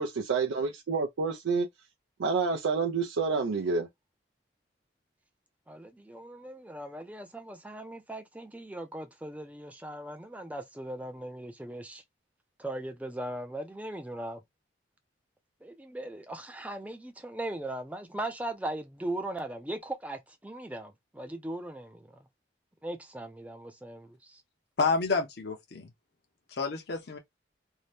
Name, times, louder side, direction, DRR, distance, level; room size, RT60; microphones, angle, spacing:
voice 1, 0.0-1.7 2.2-3.9, right 4 dB, 90° right, 0.5 m, -28 dB
voice 2, 5.7-12.0 12.6-14.4 15.6-22.3 22.8-24.4, right 1 dB, 10° right, 0.4 m, -39 dB
voice 3, 24.8-25.9 26.5-27.2, left 4 dB, 55° left, 0.6 m, -29 dB
2.7 x 2.1 x 3.3 m
head